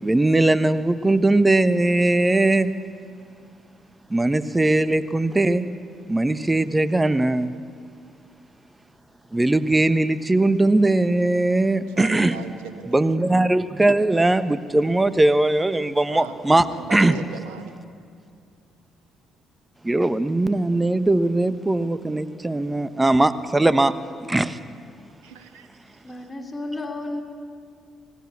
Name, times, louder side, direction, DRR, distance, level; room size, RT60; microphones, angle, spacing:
voice 1, 0.0-2.8 4.1-5.7 6.1-7.5 9.3-12.4 12.9-17.2 19.8-24.0 24.3-24.6, right 2 dB, 15° right, 14 dB, 1.2 m, -20 dB
voice 2, 11.6-13.0 16.1-17.7 25.2-25.7, right 6 dB, 75° right, 7 dB, 1.8 m, -38 dB
voice 3, 26.0-27.2, left 2 dB, 20° left, 2 dB, 4.5 m, -32 dB
25.5 x 19.0 x 8.7 m, 2.3 s
figure-of-eight pair, 45°, 0 cm